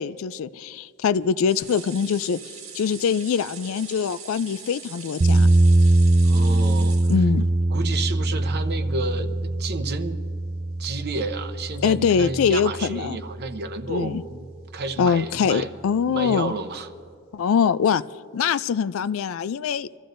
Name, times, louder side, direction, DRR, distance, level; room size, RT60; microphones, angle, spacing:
voice 1, 0.0-2.4 2.7-5.5 7.1-7.4 11.8-13.2 13.9-14.2 15.0-16.5 17.3-18.0 18.3-20.0, left 6 dB, 65° left, 16 dB, 0.3 m, -23 dB
sound 1, 1.5-7.8 8.2-8.3 8.6-8.7, right 6 dB, 85° right, 1.8 m, -42 dB
sound 2, 5.2-13.3, right 2 dB, 30° right, 0.3 m, -22 dB
voice 2, 6.2-7.0 7.7-10.2 10.8-14.5 14.7-15.7 15.9-16.9, right 3 dB, 50° right, 8 dB, 0.8 m, -31 dB
25.5 x 14.0 x 2.6 m, 2.2 s
head